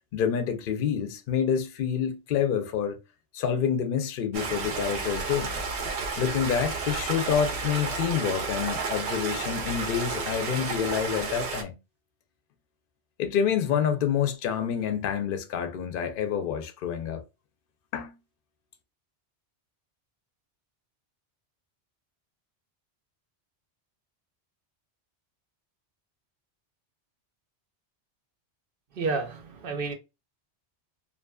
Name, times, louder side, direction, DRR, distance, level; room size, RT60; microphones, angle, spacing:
voice 1, 0.1-3.0 3.3-5.5 6.2-11.7 13.2-17.2 17.9-18.1, left 8 dB, 60° left, 0.7 m, -27 dB
Stream, 4.3-11.6, right 4 dB, 80° right, 1.0 m, -32 dB
voice 2, 28.9-29.9, right 4 dB, 60° right, 0.7 m, -30 dB
2.6 x 2.5 x 2.2 m
omnidirectional pair, 1.1 m